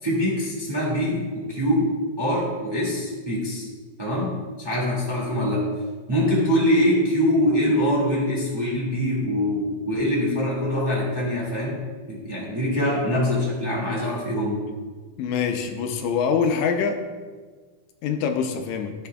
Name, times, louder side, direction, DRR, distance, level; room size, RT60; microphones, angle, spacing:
voice 1, 0.0-1.9 2.2-3.7 4.0-4.3 4.6-5.7 6.1-11.8 12.1-14.6, equal, 10° right, -4 dB, 1.3 m, -23 dB
voice 2, 15.2-17.0 18.0-18.9, left 6 dB, 80° left, 5 dB, 2.0 m, -24 dB
13.5 x 5.8 x 2.3 m, 1.5 s
omnidirectional pair, 3.4 m